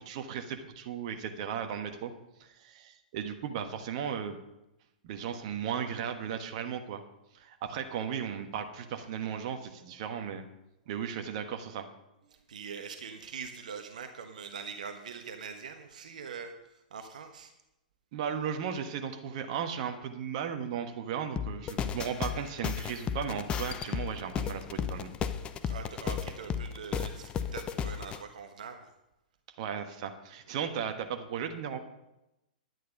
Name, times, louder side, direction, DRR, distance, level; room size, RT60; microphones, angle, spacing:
voice 1, 0.0-2.1 2.4-4.4 5.0-7.0 7.3-10.4 10.9-11.9 18.1-25.1 29.6-31.8, right 8 dB, 45° right, 6 dB, 1.3 m, -36 dB
voice 2, 12.5-16.5 16.9-17.5 25.7-28.9 30.5-30.6, right 6 dB, 65° right, 6 dB, 1.2 m, -43 dB
sound 1, 21.4-28.2, left 7 dB, 25° left, 0.7 m, -34 dB
11.0 x 9.3 x 5.3 m, 0.90 s
figure-of-eight pair, 105°, 4 cm